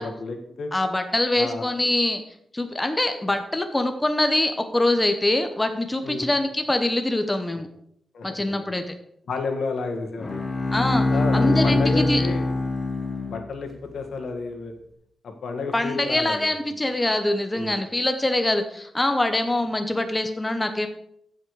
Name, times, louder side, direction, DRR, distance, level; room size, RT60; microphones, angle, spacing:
voice 1, 0.0-0.7 1.3-1.6 6.0-6.3 8.1-8.7 9.3-10.3 11.1-12.5 13.2-14.7 15.2-16.5 17.5-17.8, left 4 dB, 80° left, 4 dB, 1.7 m, -31 dB
voice 2, 0.7-2.2 2.5-7.7 8.2-8.9 10.7-11.1 11.3-12.2 15.7-20.9, left 1 dB, 15° left, 7 dB, 0.9 m, -24 dB
Bowed string instrument, 10.2-13.7, left 2 dB, 35° left, 2.6 m, -23 dB
15.0 x 5.9 x 4.8 m, 0.72 s
wide cardioid pair, 135°, 0 cm